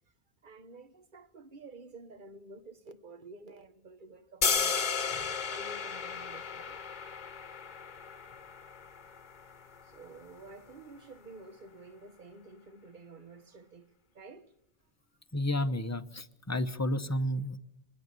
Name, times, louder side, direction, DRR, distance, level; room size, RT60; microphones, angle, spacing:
voice 1, 0.4-6.8 9.8-14.5, right 3 dB, 45° right, 1.3 m, -51 dB
sound 1, 4.4-10.5, left 6 dB, 45° left, 1.1 m, -34 dB
voice 2, 15.3-17.6, left 1 dB, 15° left, 0.7 m, -31 dB
24.5 x 20.0 x 8.2 m
omnidirectional pair, 1.1 m